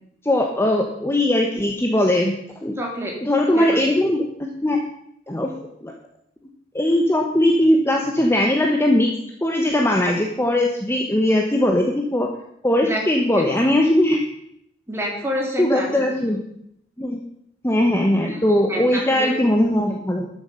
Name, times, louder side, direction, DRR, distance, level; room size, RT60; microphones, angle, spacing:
voice 1, 0.2-2.8 3.2-4.8 5.3-5.5 5.8-5.9 6.7-9.1 9.4-12.3 12.6-14.2 15.6-16.4 17.0-17.3 17.6-20.3, left 1 dB, 15° left, 1 dB, 1.0 m, -20 dB
voice 2, 2.8-3.1 3.5-3.8 12.8-13.0 13.3-13.5 14.9-15.9 18.3-19.4, equal, 15° right, -1 dB, 2.7 m, -28 dB
12.5 x 7.2 x 5.6 m, 0.72 s
head